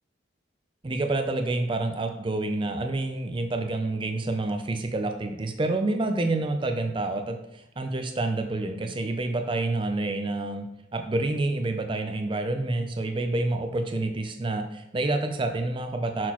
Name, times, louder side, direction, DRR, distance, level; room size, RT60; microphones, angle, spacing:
voice 1, 0.8-16.3, right 2 dB, 25° right, 6 dB, 0.4 m, -28 dB
6.0 x 6.0 x 3.0 m, 0.83 s
head